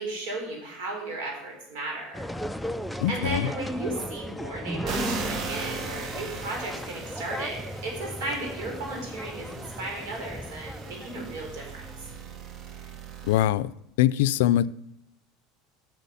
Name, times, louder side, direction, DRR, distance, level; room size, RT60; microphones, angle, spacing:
voice 1, 0.0-2.2 3.1-11.8, right 2 dB, 80° right, 4.0 m, -35 dB
sound 1, 2.1-12.2, equal, ahead, 0.3 m, -36 dB
voice 2, 3.0-3.5 13.2-13.7 14.0-14.7, left 13 dB, 85° left, 0.4 m, -22 dB
sound 2, 4.9-13.5, right 5 dB, 35° right, 0.9 m, -39 dB
8.3 x 6.3 x 6.9 m
cardioid pair, 150°, 0 cm